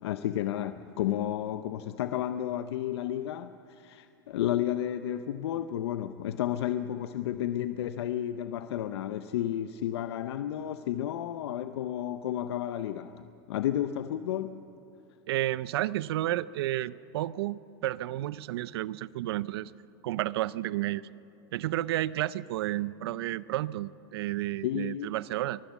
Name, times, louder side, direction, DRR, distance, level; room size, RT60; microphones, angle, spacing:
voice 1, 0.0-14.6 24.6-25.1, left 11 dB, 85° left, 0.6 m, -32 dB
voice 2, 15.3-19.7 20.0-21.0 21.5-25.6, right 14 dB, 70° right, 0.5 m, -31 dB
23.5 x 15.5 x 7.2 m
supercardioid pair, 170°, 13 cm